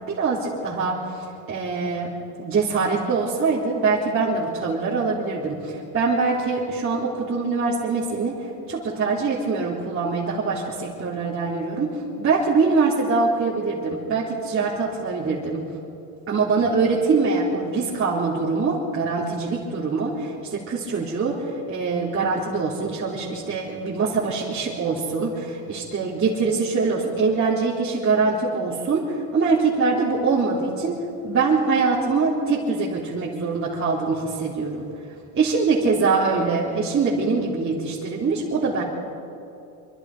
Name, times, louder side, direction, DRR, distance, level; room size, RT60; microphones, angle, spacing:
voice 1, 0.1-2.1 2.4-8.4 8.7-15.6 16.3-31.0 31.2-34.8 35.3-38.8, right 4 dB, 35° right, -7 dB, 3.9 m, -23 dB
25.5 x 24.5 x 5.1 m, 2.8 s
supercardioid pair, 100°, 38 cm